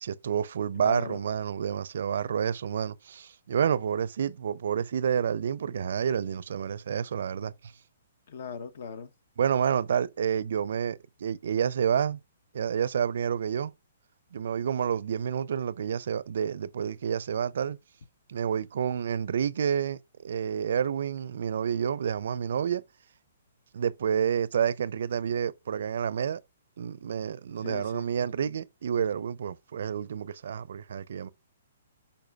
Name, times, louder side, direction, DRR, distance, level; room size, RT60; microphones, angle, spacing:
voice 1, 0.0-7.7 9.4-12.2 12.5-13.7 14.3-17.8 18.3-22.8 23.7-26.4 26.8-31.3, right 8 dB, 65° right, 0.4 m, -29 dB
voice 2, 0.8-1.2 8.3-9.1 27.6-28.1, left 6 dB, 60° left, 0.9 m, -39 dB
10.5 x 4.4 x 2.3 m
hypercardioid pair, 150°, 0 cm